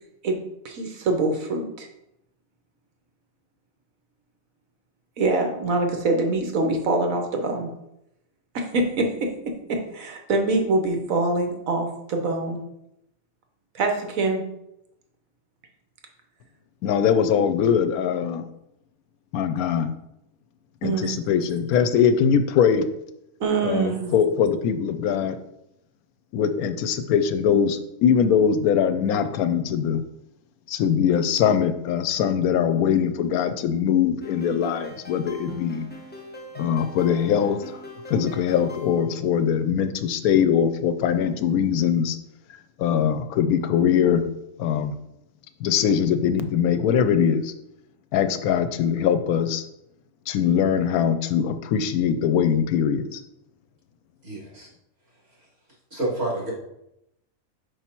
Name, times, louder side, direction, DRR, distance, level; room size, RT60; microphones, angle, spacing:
voice 1, 0.2-1.9 5.2-7.7 8.5-12.6 13.7-14.5 20.8-21.2 23.4-24.2, right 2 dB, 70° right, 4 dB, 1.3 m, -25 dB
voice 2, 16.8-18.5 19.3-19.9 20.8-22.9 23.6-25.4 26.3-30.0 30.7-35.9 36.6-37.6 38.1-42.2 42.8-44.2 44.6-44.9 45.6-47.5 48.1-49.6 50.3-53.2, left 8 dB, 85° left, 10 dB, 1.0 m, -22 dB
sound 1, 34.2-39.2, left 1 dB, 10° left, 0.6 m, -42 dB
voice 3, 54.2-54.7 55.9-56.5, right 1 dB, 45° right, -3 dB, 2.4 m, -28 dB
5.2 x 4.7 x 4.4 m, 0.83 s
omnidirectional pair, 1.5 m